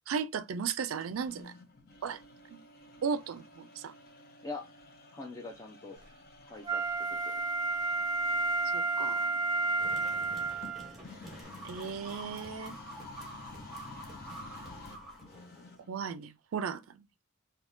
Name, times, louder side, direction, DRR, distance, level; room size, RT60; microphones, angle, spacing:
voice 1, 0.1-1.5 2.0-2.2 2.5-2.6 3.0-3.9 8.7-9.3 11.6-12.7 15.9-17.0, right 6 dB, 75° right, 0.4 m, -35 dB
sound 1, 1.0-16.0, left 2 dB, 50° left, 0.8 m, -52 dB
voice 2, 5.1-6.0 6.4-7.4, left 3 dB, 15° left, 0.4 m, -43 dB
Wind instrument woodwind instrument, 6.6-10.9 11.4-11.5, right 3 dB, 20° right, 0.9 m, -31 dB
sound 2, 9.8-15.8, equal, ahead, 1.2 m, -47 dB
3.4 x 2.7 x 2.5 m
head